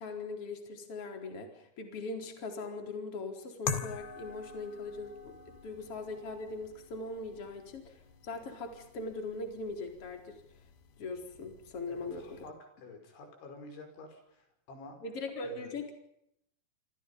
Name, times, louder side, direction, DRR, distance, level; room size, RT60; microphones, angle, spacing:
voice 1, 0.0-8.0 8.2-10.4 11.0-12.4 15.0-15.9, left 3 dB, 30° left, 4 dB, 4.8 m, -40 dB
sound 1, 3.7-12.5, left 6 dB, 65° left, 4.0 m, -45 dB
voice 2, 11.9-15.0 15.4-15.7, left 2 dB, 90° left, 5 dB, 7.9 m, -50 dB
29.0 x 25.0 x 5.6 m, 0.77 s
omnidirectional pair, 5.2 m